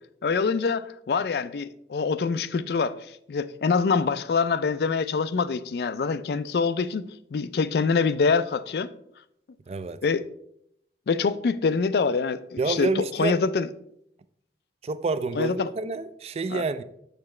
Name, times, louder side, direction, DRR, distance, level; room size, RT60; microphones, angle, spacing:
voice 1, 0.2-3.0 3.3-8.9 10.0-10.2 11.1-13.7 15.4-15.7 16.5-16.8, left 5 dB, 60° left, 0.4 m, -25 dB
voice 2, 9.7-10.0 12.6-13.4 14.8-16.8, right 4 dB, 35° right, 0.3 m, -28 dB
7.1 x 6.7 x 3.2 m
head